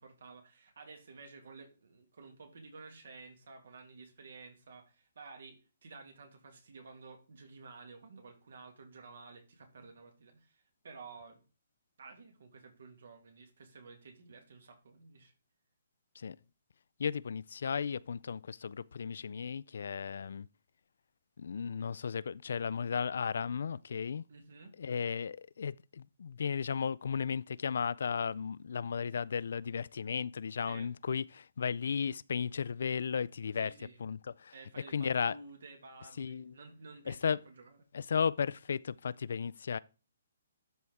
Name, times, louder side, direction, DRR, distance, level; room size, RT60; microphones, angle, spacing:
voice 1, 0.0-11.4 12.0-15.3 24.3-24.7 30.6-30.9 33.5-34.0 34.5-37.8, right 4 dB, 70° right, 2.5 m, -52 dB
voice 2, 17.0-20.5 21.4-24.2 24.8-33.7 34.0-34.5 34.9-35.3 36.2-36.5 37.1-37.4 37.9-39.8, left 6 dB, 65° left, 0.3 m, -35 dB
12.0 x 4.1 x 3.5 m
hypercardioid pair, 170°, 0 cm